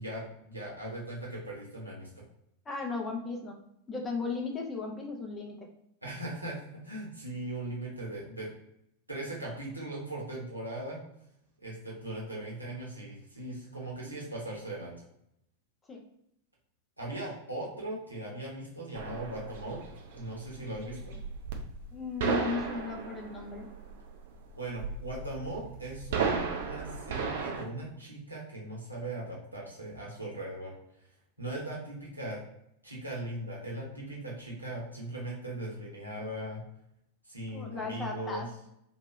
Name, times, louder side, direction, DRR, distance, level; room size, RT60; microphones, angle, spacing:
voice 1, 0.0-2.2 6.0-8.5 9.1-11.0 11.6-15.0 17.0-19.8 20.1-21.2 24.6-30.7 31.4-32.4 32.8-36.6 37.3-38.4, right 1 dB, 85° right, -4 dB, 1.0 m, -39 dB
voice 2, 2.7-3.6 3.9-5.7 14.0-14.2 15.9-16.0 21.9-23.7 37.5-38.5, left 4 dB, 20° left, 1 dB, 0.6 m, -36 dB
sound 1, 18.9-27.6, right 5 dB, 55° right, 0.5 m, -35 dB
2.9 x 2.3 x 2.9 m, 0.77 s
figure-of-eight pair, 90°, 0 cm